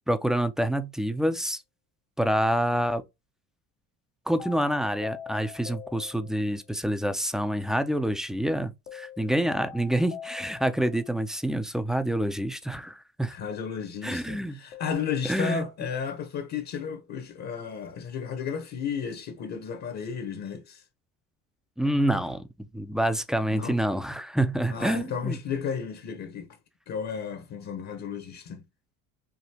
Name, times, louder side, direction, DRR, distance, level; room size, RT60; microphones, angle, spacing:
voice 1, 0.0-1.6 2.2-3.0 4.3-13.4 14.0-14.6 15.2-15.6 21.8-25.4, right 1 dB, ahead, 0.4 m, -27 dB
sound 1, 4.4-6.7 8.9-11.2 14.7-14.9, left 8 dB, 85° left, 1.2 m, -43 dB
voice 2, 13.3-20.8 23.5-23.8 24.7-26.6 26.9-28.6, left 6 dB, 50° left, 0.9 m, -33 dB
5.0 x 2.7 x 2.8 m
cardioid pair, 110°, 36 cm